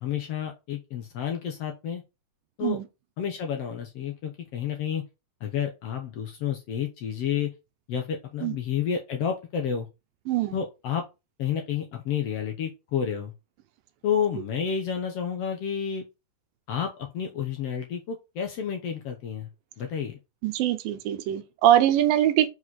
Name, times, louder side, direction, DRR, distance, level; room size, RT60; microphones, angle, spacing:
voice 1, 0.0-2.0 2.6-2.8 3.2-5.0 5.4-7.5 7.9-9.9 10.5-11.0 11.4-13.3 14.0-16.0 16.7-19.5 19.8-20.2, left 8 dB, 70° left, 1.5 m, -30 dB
voice 2, 10.3-10.6 20.4-22.5, right 12 dB, 85° right, 2.5 m, -22 dB
6.2 x 4.9 x 4.2 m
omnidirectional pair, 4.0 m